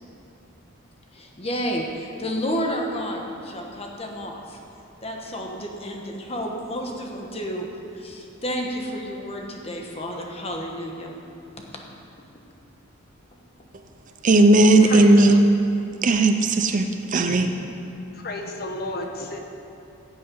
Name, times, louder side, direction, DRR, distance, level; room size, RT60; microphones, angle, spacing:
voice 1, 1.1-4.6 5.0-7.7 7.9-11.1 11.7-11.8 14.8-15.0 17.3-17.4, equal, 30° left, 1 dB, 1.3 m, -31 dB
voice 2, 14.2-15.4 16.0-17.5, right 2 dB, 35° right, 7 dB, 0.5 m, -16 dB
voice 3, 14.9-15.4 17.0-17.4 18.1-19.4, left 2 dB, 45° left, 3 dB, 1.1 m, -32 dB
16.0 x 7.6 x 5.5 m, 2.7 s
head